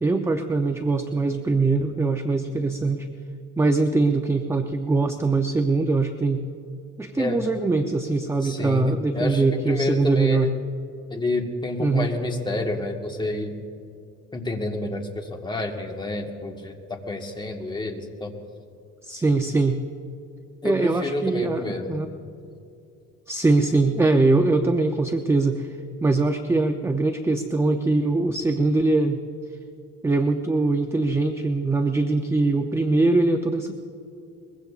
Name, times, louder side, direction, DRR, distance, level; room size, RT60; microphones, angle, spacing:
voice 1, 0.0-3.1 3.6-6.4 7.0-10.5 11.8-12.1 19.0-19.8 20.6-22.1 23.3-25.7 26.0-29.2 30.0-33.7, right 3 dB, 10° right, 6 dB, 0.5 m, -22 dB
voice 2, 8.4-10.6 11.1-13.6 14.3-18.3 20.6-22.1, left 2 dB, 15° left, 3 dB, 1.5 m, -29 dB
22.5 x 21.5 x 2.4 m, 2.5 s
cardioid pair, 130°, 32 cm